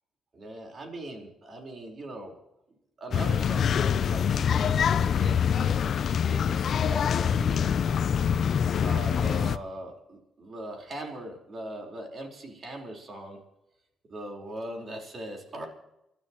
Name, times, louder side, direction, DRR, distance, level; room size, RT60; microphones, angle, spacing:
voice 1, 0.3-2.3 3.0-5.5 6.2-7.8 8.8-13.4 14.1-15.7, right 1 dB, 40° right, 2 dB, 4.5 m, -40 dB
sound 1, 3.1-9.6, left 7 dB, 60° left, 0.5 m, -25 dB
29.0 x 13.0 x 3.1 m, 0.88 s
cardioid pair, 90°, 0 cm